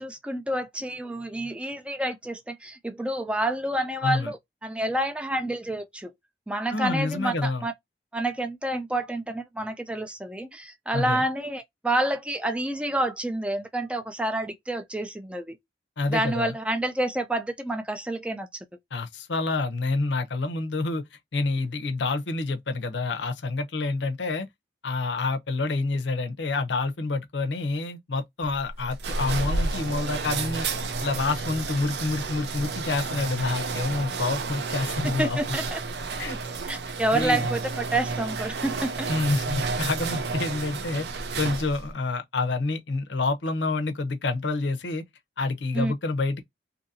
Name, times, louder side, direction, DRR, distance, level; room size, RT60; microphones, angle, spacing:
voice 1, 0.0-6.1 6.5-7.7 8.1-15.6 16.1-18.5 35.1-35.8 36.7-39.1 45.7-45.9, right 1 dB, 5° right, 0.4 m, -28 dB
voice 2, 4.0-4.3 6.7-7.6 10.9-11.2 16.0-16.5 18.9-21.0 21.3-24.5 24.8-30.7 31.0-35.4 36.2-36.4 37.1-37.5 39.1-41.1 41.4-45.0 45.4-46.4, left 3 dB, 85° left, 0.7 m, -28 dB
sound 1, 28.4-41.9, right 3 dB, 65° right, 0.5 m, -31 dB
2.7 x 2.6 x 2.6 m
head